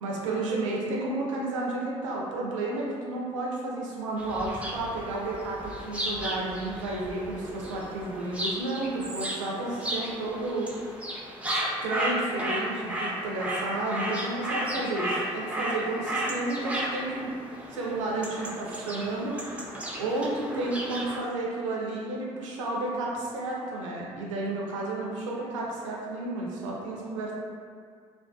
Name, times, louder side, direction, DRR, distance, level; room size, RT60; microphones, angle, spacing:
voice 1, 0.0-10.9 11.4-17.3 17.7-19.4 19.7-27.3, right 2 dB, 90° right, -3 dB, 0.4 m, -32 dB
sound 1, 4.2-21.2, right 1 dB, 10° right, 0.4 m, -34 dB
2.5 x 2.2 x 2.2 m, 2.1 s
hypercardioid pair, 55°, 16 cm